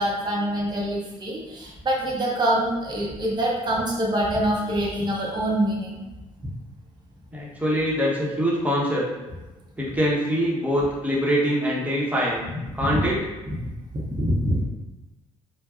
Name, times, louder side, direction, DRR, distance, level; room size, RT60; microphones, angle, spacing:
voice 1, 0.0-6.0 12.9-13.0 13.9-14.6, right 1 dB, 25° right, -3 dB, 0.9 m, -25 dB
voice 2, 7.3-9.1 9.8-13.2 13.5-13.6, equal, 10° right, -5 dB, 1.2 m, -24 dB
4.5 x 2.3 x 2.5 m, 1.1 s
hypercardioid pair, 50°, 18 cm